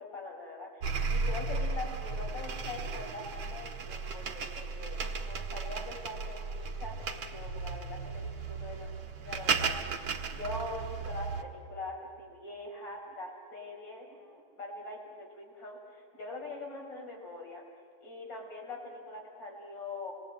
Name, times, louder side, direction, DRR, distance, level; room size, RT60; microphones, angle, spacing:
voice 1, 0.0-8.9 9.2-17.6 18.0-20.1, left 2 dB, 60° left, 0 dB, 5.7 m, -43 dB
sound 1, 0.8-11.4, right 4 dB, 70° right, 2.4 m, -35 dB
28.0 x 20.5 x 8.7 m, 2.1 s
omnidirectional pair, 2.3 m